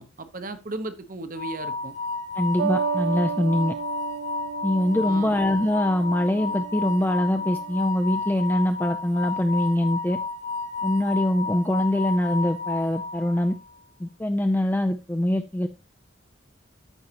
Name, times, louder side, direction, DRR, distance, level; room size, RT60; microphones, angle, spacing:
voice 1, 0.0-1.9 5.0-5.4, right 2 dB, 45° right, 0.9 m, -35 dB
sound 1, 1.3-13.6, left 4 dB, 55° left, 1.8 m, -32 dB
voice 2, 2.4-3.7 4.6-10.2 10.8-13.6 14.0-15.7, left 1 dB, 10° left, 0.4 m, -23 dB
sound 2, 2.6-7.8, right 7 dB, 60° right, 0.4 m, -33 dB
13.5 x 5.5 x 2.9 m
head